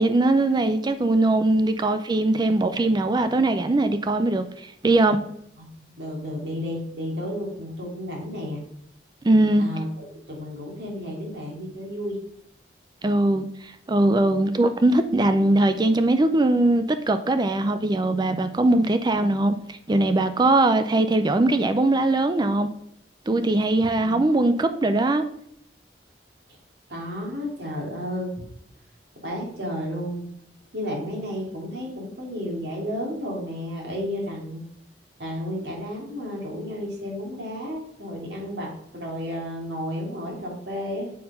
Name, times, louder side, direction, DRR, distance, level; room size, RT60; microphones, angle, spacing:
voice 1, 0.0-5.2 9.2-9.7 13.0-22.7 23.3-25.2, right 2 dB, 25° right, 0.4 m, -21 dB
voice 2, 5.6-8.6 9.6-9.9 10.3-12.2 23.8-24.4 26.9-28.5 29.2-30.3 30.7-34.6 35.2-41.1, equal, 70° right, 2.6 m, -32 dB
7.5 x 4.3 x 5.4 m
head